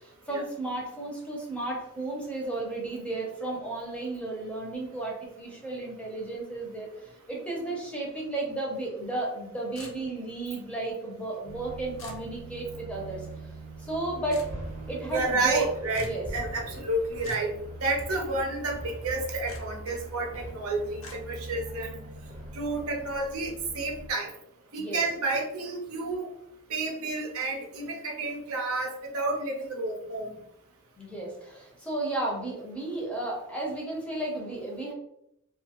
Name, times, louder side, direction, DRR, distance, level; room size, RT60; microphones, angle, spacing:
voice 1, 0.0-6.9 7.3-13.2 13.8-14.4 14.9-15.7 16.0-16.3 24.8-25.0 31.0-34.9, right 2 dB, 5° left, -2 dB, 0.6 m, -33 dB
sound 1, 9.8-10.3 12.0-12.3 14.3-14.5 15.9-16.2 17.2-17.5 19.5-19.6 21.0-21.2, left 2 dB, 65° left, 0.6 m, -43 dB
sound 2, 11.5-24.1, right 2 dB, 30° right, 0.7 m, -42 dB
voice 2, 15.0-17.5 17.8-22.0 22.5-24.3 24.7-26.3 26.7-30.3, right 2 dB, 80° right, 1 dB, 0.6 m, -30 dB
2.6 x 2.3 x 2.9 m, 0.79 s
head